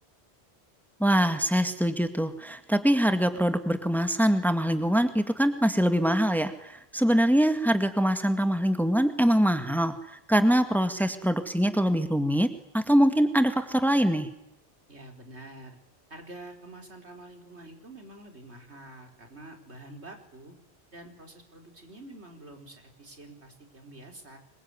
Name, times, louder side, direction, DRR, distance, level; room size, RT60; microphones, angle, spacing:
voice 1, 1.0-14.3, equal, ahead, 8 dB, 2.0 m, -24 dB
voice 2, 14.9-15.8 16.1-20.5 20.9-24.4, right 2 dB, 85° right, 4 dB, 4.8 m, -47 dB
25.5 x 23.0 x 9.7 m, 0.86 s
omnidirectional pair, 1.1 m